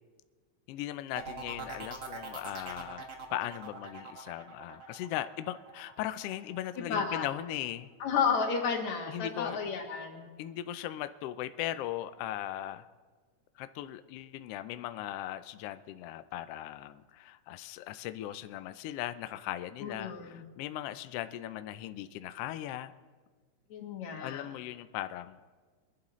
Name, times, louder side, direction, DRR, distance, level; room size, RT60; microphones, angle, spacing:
voice 1, 0.7-3.0 3.3-7.9 9.1-9.6 10.4-12.9 13.6-22.9 24.2-25.4, left 13 dB, 90° left, 12 dB, 1.3 m, -38 dB
sound 1, 1.2-6.8 7.2-7.6, right 4 dB, 60° right, 0.8 m, -44 dB
voice 2, 6.8-7.3 8.0-10.3 19.8-20.4 23.7-24.5, left 6 dB, 70° left, 1 dB, 3.0 m, -32 dB
23.0 x 11.5 x 3.1 m, 1.5 s
omnidirectional pair, 3.3 m